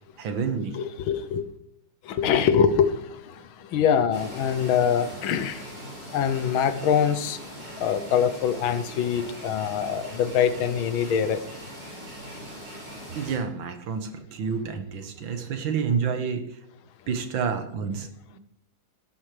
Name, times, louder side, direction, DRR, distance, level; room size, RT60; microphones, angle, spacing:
voice 1, 0.2-0.8 13.2-16.6 17.1-18.4, right 6 dB, 70° right, 1.9 m, -29 dB
voice 2, 0.7-1.4 2.1-2.9 3.7-5.6 6.1-7.4 7.8-11.4, left 8 dB, 80° left, 1.6 m, -23 dB
sound 1, 4.1-13.4, equal, 40° right, 5.8 m, -41 dB
17.0 x 12.0 x 3.3 m
omnidirectional pair, 2.2 m